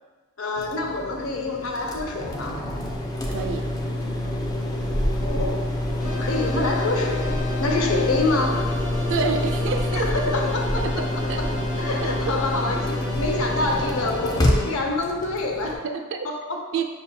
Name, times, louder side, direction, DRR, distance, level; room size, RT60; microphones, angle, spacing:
voice 1, 0.4-2.7 5.2-5.7 6.2-8.8 9.9-15.8 16.2-16.6, left 2 dB, 70° left, 2 dB, 0.5 m, -27 dB
sound 1, 0.6-15.8, left 1 dB, 20° left, 0.3 m, -27 dB
voice 2, 3.3-3.7 9.1-10.1 10.8-11.4 12.0-12.1 15.8-16.3 16.7-16.8, right 5 dB, 60° right, 4 dB, 0.4 m, -28 dB
sound 2, 6.0-14.7, left 2 dB, 40° left, 0.8 m, -34 dB
5.5 x 2.7 x 2.2 m, 1.3 s
head